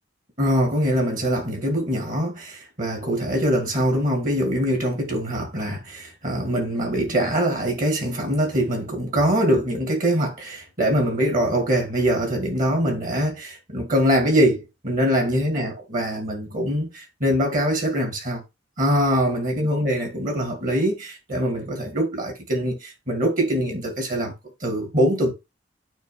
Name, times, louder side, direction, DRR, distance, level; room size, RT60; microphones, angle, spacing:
voice 1, 0.4-18.4 18.8-24.3 24.6-25.3, equal, 45° right, 2.3 m, -23 dB
8.9 x 3.0 x 5.0 m
head